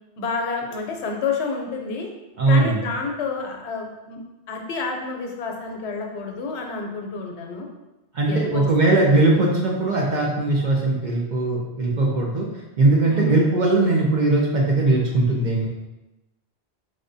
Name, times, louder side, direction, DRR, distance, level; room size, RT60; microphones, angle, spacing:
voice 1, 0.2-2.1 2.5-4.2 4.5-7.7 8.3-9.0 13.1-13.4, left 4 dB, 80° left, 2 dB, 0.9 m, -29 dB
voice 2, 2.4-2.9 8.1-12.5 12.8-15.7, right 2 dB, 55° right, -2 dB, 0.5 m, -19 dB
4.8 x 2.2 x 2.6 m, 1.0 s
omnidirectional pair, 1.1 m